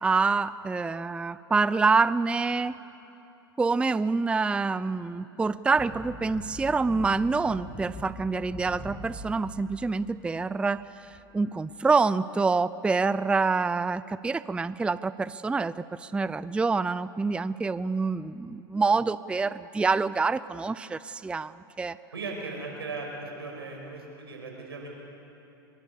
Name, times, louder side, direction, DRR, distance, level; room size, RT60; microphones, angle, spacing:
voice 1, 0.0-2.7 3.6-22.0, right 4 dB, 10° right, 17 dB, 0.4 m, -26 dB
sound 1, 5.7-10.7 11.1-11.3, left 2 dB, 25° left, 6.1 m, -43 dB
voice 2, 22.1-24.9, right 3 dB, 85° right, 0 dB, 5.8 m, -37 dB
26.0 x 22.5 x 7.0 m, 3.0 s
hypercardioid pair, 95°, 13 cm